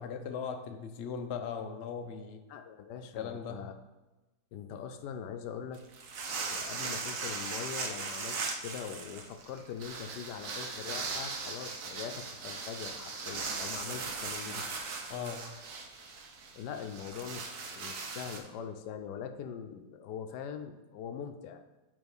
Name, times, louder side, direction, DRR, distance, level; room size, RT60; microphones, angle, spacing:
voice 1, 0.0-2.4 3.2-3.7 15.1-15.4, left 6 dB, 65° left, 6 dB, 0.7 m, -38 dB
voice 2, 2.5-3.7 4.5-5.8 6.5-14.7 16.6-21.6, left 7 dB, 80° left, 7 dB, 1.2 m, -42 dB
sound 1, 5.7-18.4, right 4 dB, 70° right, 1.3 m, -39 dB
8.8 x 3.1 x 5.3 m, 1.1 s
omnidirectional pair, 1.8 m